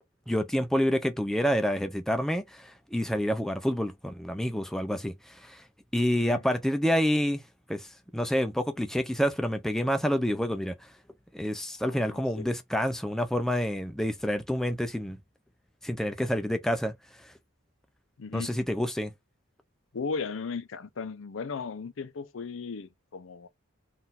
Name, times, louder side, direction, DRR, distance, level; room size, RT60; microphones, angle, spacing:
voice 1, 0.3-5.6 5.9-7.4 7.7-7.9 8.1-10.7 11.3-15.2 15.8-16.9 17.2-17.3 18.3-19.1, equal, ahead, 0.4 m, -28 dB
voice 2, 6.1-6.5 11.8-12.5 18.2-18.6 19.9-23.5, left 5 dB, 65° left, 0.5 m, -37 dB
3.8 x 2.5 x 4.0 m
head